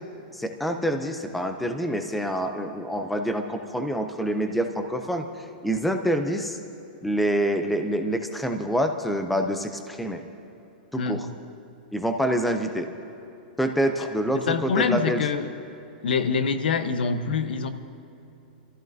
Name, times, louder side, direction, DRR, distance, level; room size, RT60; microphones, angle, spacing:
voice 1, 0.3-5.3 5.6-6.6 7.0-10.2 10.9-11.3 11.9-12.9 13.6-15.2, equal, ahead, 6 dB, 0.4 m, -26 dB
voice 2, 14.0-15.5 16.0-17.7, left 5 dB, 85° left, 10 dB, 0.9 m, -25 dB
28.0 x 14.0 x 2.6 m, 2.8 s
supercardioid pair, 180°, 5 cm